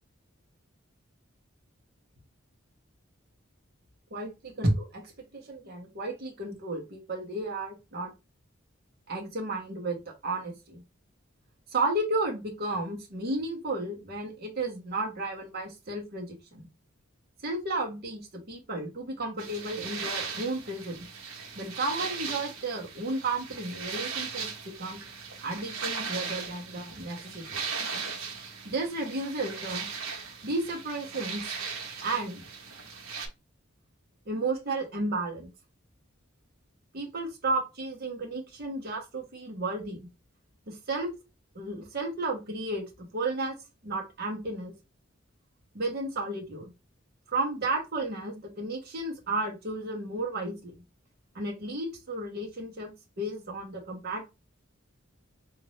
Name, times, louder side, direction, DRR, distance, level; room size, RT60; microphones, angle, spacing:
voice 1, 4.1-8.1 9.1-10.8 11.7-16.7 17.4-21.1 21.6-24.5 24.8-25.0 25.4-27.6 28.6-29.9 30.4-31.4 32.0-32.4 34.3-35.5 36.9-40.1 40.7-41.1 41.5-43.6 43.8-44.7 45.7-46.7 47.3-50.7 51.3-54.2, right 2 dB, 50° right, 1 dB, 1.0 m, -33 dB
sound 1, 19.4-33.3, right 5 dB, 85° right, 0.9 m, -38 dB
3.9 x 2.5 x 3.1 m, 0.26 s
head